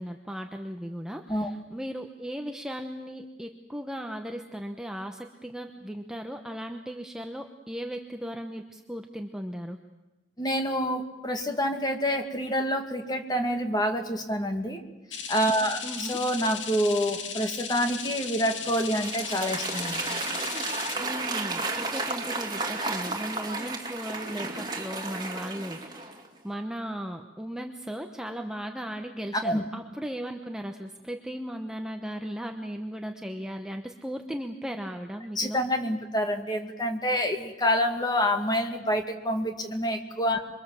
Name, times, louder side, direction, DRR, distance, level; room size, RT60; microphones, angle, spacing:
voice 1, 0.0-9.8 15.8-16.2 21.0-26.1 26.4-35.6, equal, 5° right, 4 dB, 0.9 m, -37 dB
voice 2, 10.4-14.8 15.3-20.1 29.4-29.6 35.4-40.4, equal, 20° left, 5 dB, 2.2 m, -27 dB
sound 1, 15.1-21.0, left 7 dB, 80° left, 2.2 m, -36 dB
Applause / Crowd, 18.5-26.3, right 3 dB, 20° right, 2.6 m, -33 dB
27.5 x 23.5 x 7.5 m, 1.0 s
head